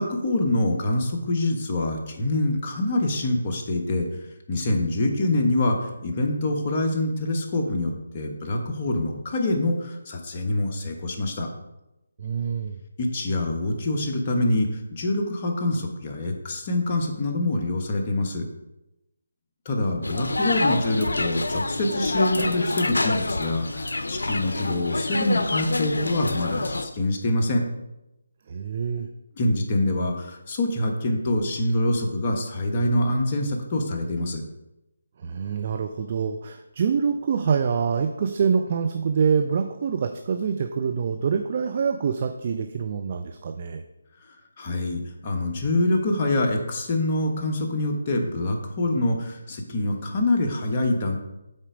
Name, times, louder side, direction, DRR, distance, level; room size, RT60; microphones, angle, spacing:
voice 1, 0.0-4.1 4.5-11.5 13.0-18.4 19.6-27.6 29.4-34.4 44.2-51.2, left 1 dB, 35° left, 1 dB, 1.2 m, -25 dB
voice 2, 12.2-12.8 28.5-29.1 35.2-43.8, right 6 dB, 40° right, 7 dB, 0.5 m, -25 dB
sound 1, 20.0-26.9, left 2 dB, 75° left, 0.7 m, -27 dB
7.8 x 4.4 x 5.1 m, 0.94 s
figure-of-eight pair, 150°, 0 cm